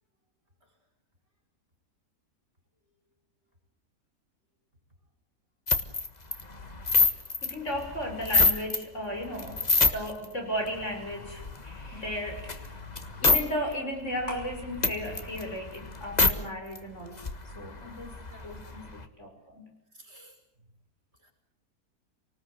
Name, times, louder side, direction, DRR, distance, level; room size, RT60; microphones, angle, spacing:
sound 1, 5.7-8.8 9.2-10.2 10.7-13.4 13.7-13.8 14.1-16.3 16.8-16.9 17.0-19.0, left 3 dB, 25° left, 1.6 m, -27 dB
voice 1, 7.0-12.7 13.2-17.2 17.6-18.1 18.4-19.6, equal, 50° left, 2 dB, 6.1 m, -35 dB
voice 2, 9.7-10.1 11.9-12.0 12.9-13.4 18.3-18.5 19.9-20.4 21.2-21.3, equal, 40° right, 3 dB, 5.8 m, -53 dB
28.0 x 19.5 x 8.0 m, 0.77 s
omnidirectional pair, 1.6 m